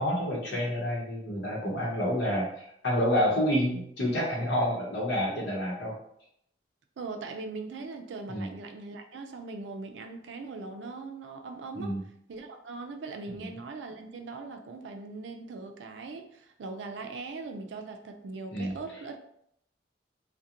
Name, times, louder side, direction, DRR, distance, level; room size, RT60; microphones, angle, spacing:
voice 1, 0.0-5.9 8.3-8.5 11.7-12.0 18.5-18.8, equal, 70° left, -4 dB, 0.8 m, -28 dB
voice 2, 7.0-12.0 12.3-19.2, right 3 dB, 85° right, 5 dB, 0.4 m, -40 dB
2.8 x 2.1 x 2.4 m, 0.72 s
head